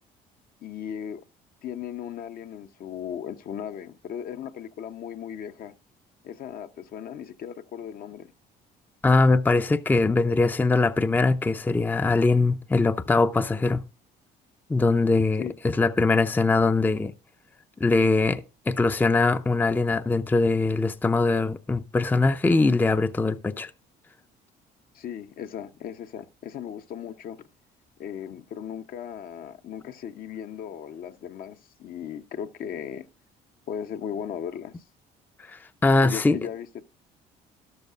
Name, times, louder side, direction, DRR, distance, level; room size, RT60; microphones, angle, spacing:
voice 1, 0.6-1.2 1.6-5.7 6.2-8.3 15.4-15.5 24.9-27.4 28.0-33.1 33.7-34.7 36.0-36.8, left 8 dB, 60° left, 0.8 m, -37 dB
voice 2, 9.0-13.8 14.7-17.1 17.8-23.7 35.5-36.4, left 3 dB, 10° left, 0.5 m, -22 dB
12.5 x 12.0 x 2.4 m
cardioid pair, 110°, 17 cm